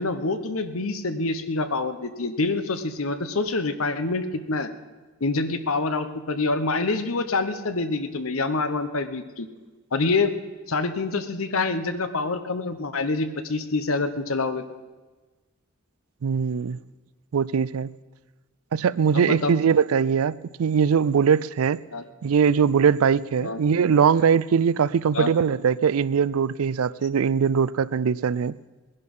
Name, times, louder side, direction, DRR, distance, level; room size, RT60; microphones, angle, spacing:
voice 1, 0.0-4.7 5.2-9.5 9.9-10.3 10.7-14.6 19.1-19.5 21.9-22.0 23.4-23.6 25.1-25.3, left 3 dB, 80° left, 1.0 m, -26 dB
voice 2, 16.2-16.8 17.3-17.9 18.7-21.8 22.2-28.5, right 6 dB, 85° right, 0.4 m, -21 dB
19.5 x 11.0 x 5.5 m
head